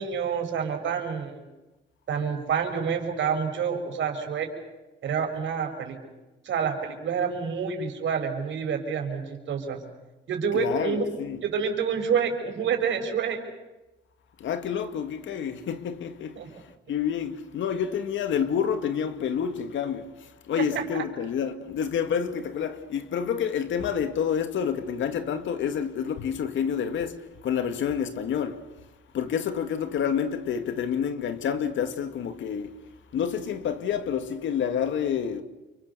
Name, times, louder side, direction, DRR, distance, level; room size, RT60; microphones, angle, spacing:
voice 1, 0.0-1.4 2.1-4.5 5.0-6.0 6.4-9.8 10.3-11.1 11.4-13.4 16.4-16.5 20.6-21.0, right 6 dB, 70° right, 5.8 m, -28 dB
voice 2, 10.5-11.4 14.4-16.5 16.9-28.6 29.1-32.7 33.1-35.4, left 7 dB, 70° left, 2.3 m, -28 dB
29.5 x 24.0 x 7.0 m
cardioid pair, 90°, 20 cm